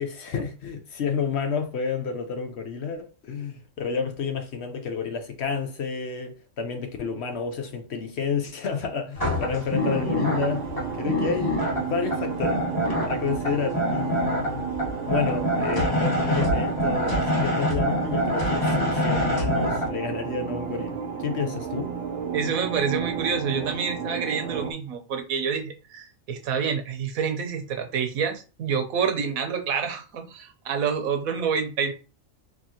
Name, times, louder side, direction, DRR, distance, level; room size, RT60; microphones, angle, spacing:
voice 1, 0.0-12.6 13.1-14.6 15.1-21.9, left 5 dB, 60° left, 0.9 m, -30 dB
sound 1, 9.2-19.9, left 1 dB, 15° left, 1.3 m, -26 dB
sound 2, 9.8-24.7, right 7 dB, 60° right, 0.7 m, -32 dB
voice 2, 22.3-31.9, right 6 dB, 85° right, 1.2 m, -28 dB
4.4 x 2.9 x 2.8 m
omnidirectional pair, 1.4 m